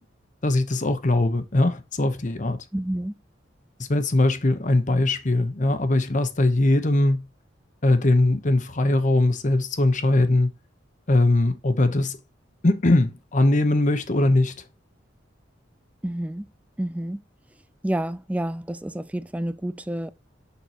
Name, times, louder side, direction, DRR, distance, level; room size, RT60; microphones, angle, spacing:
voice 1, 0.4-2.6 3.9-7.3 7.8-10.5 11.1-12.2 12.6-14.6, left 2 dB, 40° left, 1.0 m, -21 dB
voice 2, 2.7-3.1 16.0-16.5 16.8-17.2 17.8-20.1, right 1 dB, 5° right, 0.4 m, -29 dB
6.8 x 6.0 x 2.9 m
head